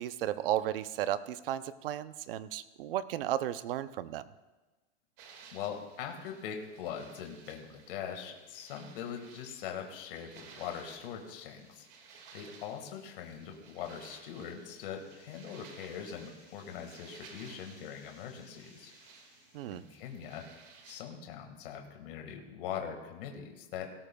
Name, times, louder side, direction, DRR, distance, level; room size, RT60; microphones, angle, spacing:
voice 1, 0.0-4.2 19.5-19.8, right 12 dB, 55° right, 14 dB, 0.6 m, -34 dB
sound 1, 5.2-21.0, right 5 dB, 35° right, 2.0 m, -56 dB
voice 2, 5.5-11.9 12.3-18.9 19.7-20.5 20.8-23.9, left 8 dB, 50° left, 3 dB, 1.8 m, -42 dB
sound 2, 8.0-8.3 8.7-8.8 9.8-20.0, left 4 dB, 20° left, 4.4 m, -65 dB
18.0 x 18.0 x 2.3 m, 1.2 s
supercardioid pair, 175°, 35 cm